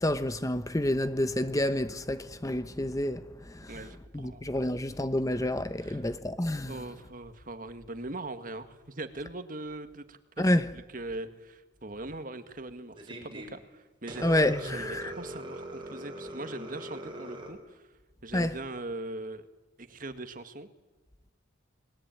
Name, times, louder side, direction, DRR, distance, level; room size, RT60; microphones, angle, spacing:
voice 1, 0.0-3.7 4.1-6.8 10.4-10.7 14.2-15.1 18.3-18.6, left 1 dB, 15° left, 0.9 m, -29 dB
voice 2, 3.7-4.8 5.8-6.0 6.7-14.3 14.6-17.8 18.2-19.5 19.8-20.7, right 2 dB, 45° right, 1.9 m, -41 dB
sound 1, 13.0-13.5 14.1-17.5, right 1 dB, 25° right, 5.5 m, -41 dB
29.0 x 21.0 x 9.2 m
head